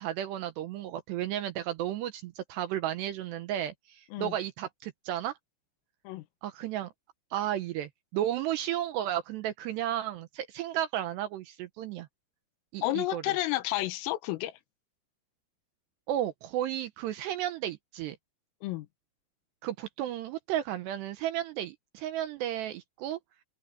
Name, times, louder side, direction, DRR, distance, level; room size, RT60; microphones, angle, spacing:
voice 1, 0.0-5.4 6.4-6.9 7.3-12.1 12.7-13.2 16.1-18.2 19.6-23.2, right 12 dB, 80° right, 2.5 m, -33 dB
voice 2, 12.8-14.6 18.6-18.9, left 17 dB, 85° left, 3.7 m, -31 dB
open air
omnidirectional pair, 5.9 m